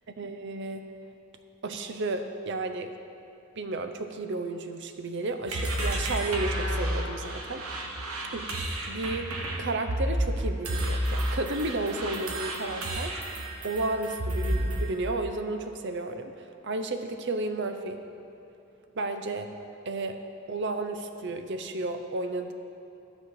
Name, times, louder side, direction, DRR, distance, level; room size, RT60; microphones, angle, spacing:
voice 1, 0.2-0.8 1.6-2.9 3.6-7.6 8.3-8.5 8.9-18.0 19.0-19.5 19.9-20.2 20.5-22.5, right 2 dB, 55° right, 7 dB, 0.6 m, -33 dB
sound 1, 5.5-14.9, right 1 dB, 75° right, 1.1 m, -31 dB
12.5 x 4.3 x 7.7 m, 2.7 s
head